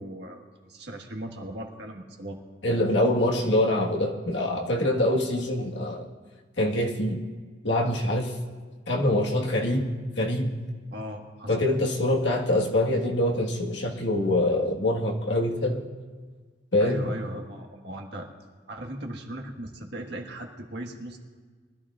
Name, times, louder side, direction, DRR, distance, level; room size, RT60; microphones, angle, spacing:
voice 1, 0.0-2.4 10.9-11.6 16.8-18.3 18.7-21.2, right 1 dB, 65° right, 1 dB, 1.6 m, -38 dB
voice 2, 2.6-6.1 6.6-7.2 7.6-8.3 8.9-9.9 10.2-10.5 11.5-15.9 16.7-17.1, left 1 dB, 80° left, -1 dB, 1.6 m, -24 dB
23.0 x 13.5 x 2.5 m, 1.5 s
head